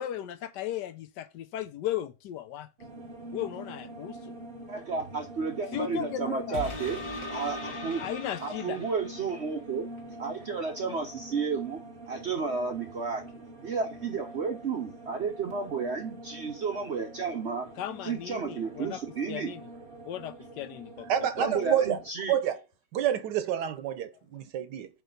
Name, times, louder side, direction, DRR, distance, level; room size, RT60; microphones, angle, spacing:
voice 1, 0.0-2.7 3.3-4.3 5.7-6.6 8.0-8.8 17.8-19.0 19.3-19.7 20.1-21.1 21.4-21.7, left 11 dB, 75° left, 1.2 m, -36 dB
sound 1, 2.8-22.1, right 1 dB, 35° right, 1.0 m, -45 dB
voice 2, 4.7-7.0 7.3-8.0 8.4-9.9 10.2-11.8 12.1-13.2 13.6-17.7 18.0-19.5 21.4-22.4, right 5 dB, 55° right, 0.7 m, -32 dB
sound 2, 6.5-9.5 10.0-10.1, left 1 dB, 50° left, 2.0 m, -39 dB
voice 3, 21.1-22.0 22.3-22.6 22.9-24.9, right 10 dB, 75° right, 1.3 m, -28 dB
8.0 x 3.1 x 5.3 m
omnidirectional pair, 1.9 m